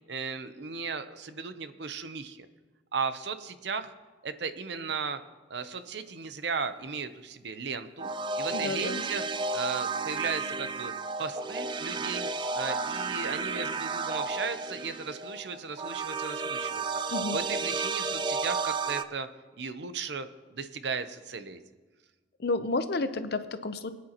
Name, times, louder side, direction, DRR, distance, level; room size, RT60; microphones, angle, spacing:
voice 1, 0.1-2.5 2.9-3.9 4.2-5.2 5.5-8.1 8.4-9.2 9.5-10.9 11.2-12.3 12.5-17.0 17.3-19.3 19.6-21.6, right 5 dB, 70° right, 11 dB, 0.7 m, -36 dB
sound 1, 8.0-19.0, right 4 dB, 25° right, 0.4 m, -32 dB
voice 2, 8.5-9.0 17.1-17.4 22.4-23.9, left 3 dB, 60° left, 10 dB, 0.7 m, -31 dB
21.5 x 9.3 x 2.9 m, 1.3 s
head